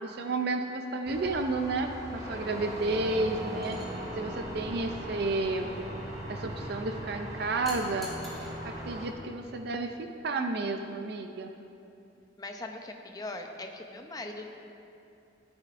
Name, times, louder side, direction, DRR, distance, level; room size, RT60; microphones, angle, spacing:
voice 1, 0.0-3.8 4.2-5.8 6.3-8.1 8.6-9.9 10.2-11.5, right 3 dB, 55° right, 5 dB, 0.4 m, -31 dB
sound 1, 1.0-9.1, equal, 15° right, 0.8 m, -42 dB
sound 2, 2.1-9.0, equal, 35° right, 1.6 m, -41 dB
sound 3, 3.6-3.9 7.7-8.5 9.9-10.1, left 1 dB, ahead, 1.8 m, -45 dB
voice 2, 12.4-14.5, left 2 dB, 20° left, 4 dB, 0.6 m, -40 dB
14.0 x 8.7 x 2.5 m, 2.8 s
head